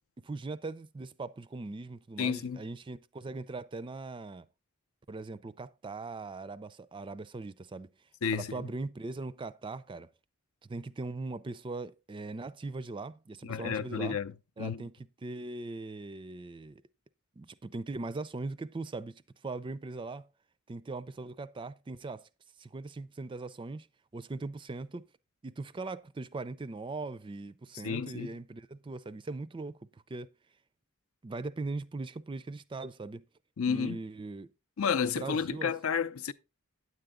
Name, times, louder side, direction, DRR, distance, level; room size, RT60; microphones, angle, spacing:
voice 1, 0.2-4.4 5.1-7.9 8.3-10.1 10.6-14.2 14.6-16.8 17.4-20.3 20.7-22.3 22.6-23.9 24.1-25.1 25.4-30.3 31.2-33.2 33.6-34.5 35.0-35.7, right 3 dB, 25° right, 0.4 m, -40 dB
voice 2, 2.2-2.6 8.2-8.6 13.4-14.3 14.6-14.8 27.8-28.4 33.6-34.0 34.8-36.3, left 6 dB, 75° left, 0.5 m, -31 dB
9.7 x 7.8 x 3.6 m
head